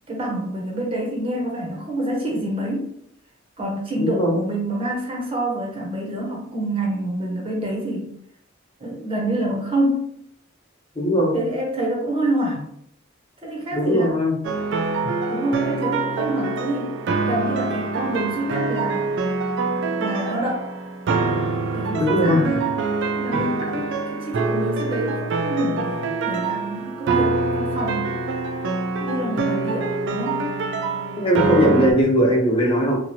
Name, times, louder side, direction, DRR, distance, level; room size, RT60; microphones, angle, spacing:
voice 1, 0.1-2.9 3.6-8.1 8.8-10.1 11.3-12.7 13.4-14.1 15.3-19.1 20.0-20.7 21.7-22.8 23.1-28.2 29.0-30.5, right 1 dB, 30° right, -1 dB, 0.7 m, -27 dB
voice 2, 4.0-4.4 11.0-11.4 13.7-14.3 21.9-22.4 31.2-32.9, equal, 25° left, -2 dB, 0.8 m, -19 dB
sound 1, 14.4-31.9, right 3 dB, 60° right, 0.4 m, -25 dB
2.9 x 2.4 x 2.7 m, 0.69 s
head